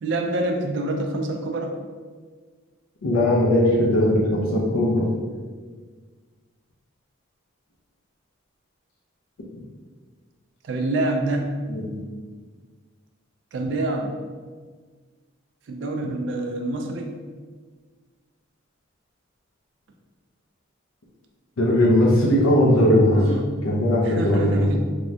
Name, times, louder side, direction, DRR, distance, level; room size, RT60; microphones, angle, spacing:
voice 1, 0.0-1.8 10.6-11.5 13.5-14.1 15.7-17.2 23.0-23.5 24.0-24.8, right 2 dB, 60° right, 3 dB, 0.3 m, -26 dB
voice 2, 3.0-5.1 11.7-12.0 21.6-23.2 23.6-24.7, left 1 dB, 85° left, -3 dB, 0.5 m, -19 dB
3.4 x 2.1 x 2.7 m, 1.5 s
head